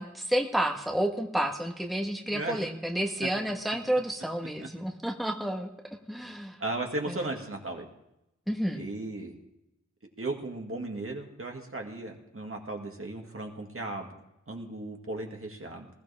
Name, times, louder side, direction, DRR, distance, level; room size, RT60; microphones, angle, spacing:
voice 1, 0.0-5.7 6.1-6.6 7.1-7.2 8.5-8.8, right 1 dB, ahead, 2 dB, 1.5 m, -30 dB
voice 2, 2.3-2.6 6.6-7.9 8.7-9.4 10.2-14.2 14.5-15.9, right 2 dB, 50° right, 1 dB, 2.2 m, -36 dB
20.5 x 13.0 x 3.6 m, 0.86 s
cardioid pair, 45°, 29 cm